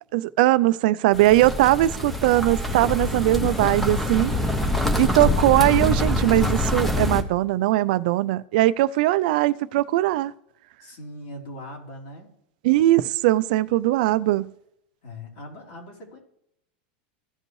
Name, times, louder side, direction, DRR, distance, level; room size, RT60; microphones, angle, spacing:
voice 1, 0.1-4.3 5.0-10.3 12.6-14.5, right 16 dB, 65° right, 0.4 m, -20 dB
sound 1, 1.1-7.2, left 1 dB, 5° left, 0.9 m, -25 dB
voice 2, 10.8-12.3 15.0-16.2, left 1 dB, 60° left, 3.6 m, -40 dB
15.5 x 5.2 x 3.2 m
supercardioid pair, 150°, 5 cm